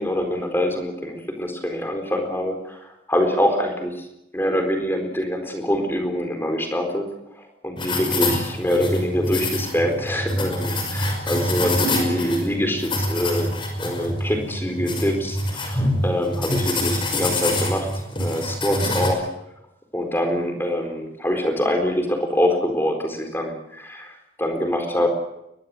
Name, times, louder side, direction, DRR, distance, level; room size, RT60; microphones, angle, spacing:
voice 1, 0.0-4.1 4.3-13.5 13.8-17.9 18.2-19.3 19.9-25.1, equal, 10° left, 5 dB, 4.2 m, -25 dB
sound 1, 7.8-19.1, left 1 dB, 30° left, 5.6 m, -26 dB
22.5 x 21.5 x 7.9 m, 0.84 s
head